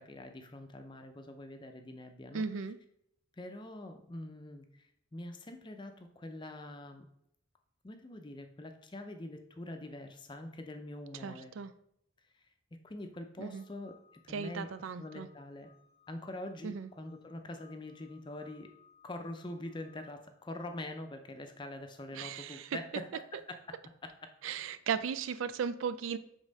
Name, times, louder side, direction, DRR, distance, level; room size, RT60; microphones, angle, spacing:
voice 1, 0.0-2.5 3.3-7.0 7.8-11.6 12.3-12.4 12.8-14.0 14.2-15.7 16.1-18.7 19.0-23.8, left 1 dB, 25° left, 6 dB, 0.5 m, -44 dB
voice 2, 2.3-2.8 11.2-11.7 13.4-13.6 14.3-15.3 16.6-16.9 22.1-22.8 24.4-26.2, right 6 dB, 75° right, 12 dB, 0.4 m, -36 dB
sound 1, 13.5-21.3, left 7 dB, 50° right, 1.3 m, -65 dB
5.3 x 3.6 x 5.2 m, 0.75 s
head